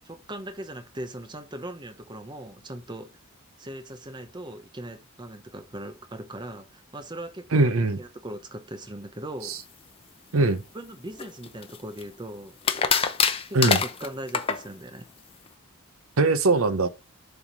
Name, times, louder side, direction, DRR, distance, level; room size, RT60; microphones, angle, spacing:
voice 1, 0.1-3.1 3.6-9.6 10.7-12.6 13.5-15.1, right 1 dB, 20° right, 0.9 m, -39 dB
voice 2, 7.5-8.0 9.4-9.6 10.3-10.6 13.5-13.8 16.2-16.9, right 3 dB, 70° right, 0.8 m, -21 dB
sound 1, 11.2-12.0 12.6-14.6, left 6 dB, 25° left, 0.7 m, -24 dB
7.2 x 3.5 x 6.0 m
head